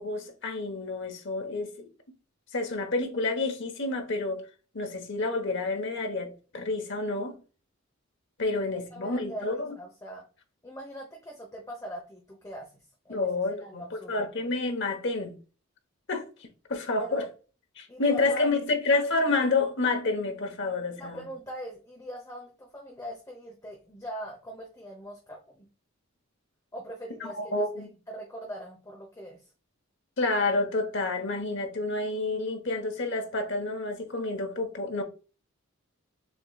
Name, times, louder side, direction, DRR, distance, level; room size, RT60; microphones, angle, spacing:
voice 1, 0.0-1.9 2.5-4.5 4.7-7.4 8.4-9.7 13.1-15.4 16.1-16.3 16.7-17.3 17.8-21.2 27.2-27.9 30.2-35.0, left 3 dB, 60° left, 1.0 m, -29 dB
voice 2, 8.9-10.2 10.6-14.2 17.0-17.3 17.9-18.5 21.0-25.7 26.7-29.4, equal, 15° left, 0.9 m, -42 dB
6.8 x 3.0 x 2.3 m
head